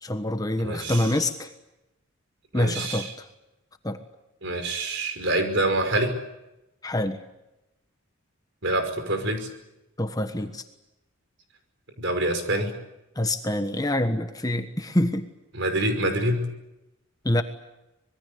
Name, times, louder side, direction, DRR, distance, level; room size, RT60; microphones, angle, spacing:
voice 1, 0.0-1.5 2.5-3.3 3.8-4.0 6.8-7.2 10.0-10.6 13.1-15.3 17.2-17.4, left 1 dB, 15° left, 8 dB, 1.3 m, -26 dB
voice 2, 0.6-1.1 2.5-3.1 4.4-6.1 8.6-9.5 12.0-12.7 15.5-16.5, right 1 dB, 55° right, 7 dB, 5.5 m, -26 dB
26.0 x 22.0 x 8.3 m, 0.94 s
head